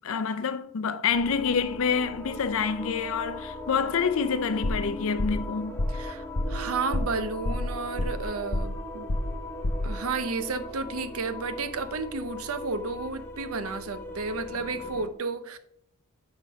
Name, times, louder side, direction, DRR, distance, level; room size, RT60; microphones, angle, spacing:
voice 1, 0.0-5.8, left 6 dB, 65° left, 0.5 m, -27 dB
sound 1, 1.1-15.1, left 1 dB, 10° left, 0.9 m, -39 dB
sound 2, 4.6-4.9 5.2-5.5 5.8-6.1 6.3-6.6 6.9-7.2 7.4-8.3 8.5-8.8 9.1-9.4 9.6-9.9, left 1 dB, 85° left, 1.0 m, -28 dB
voice 2, 5.9-9.1 9.8-15.6, right 4 dB, 70° right, 0.7 m, -32 dB
6.6 x 4.7 x 5.2 m
head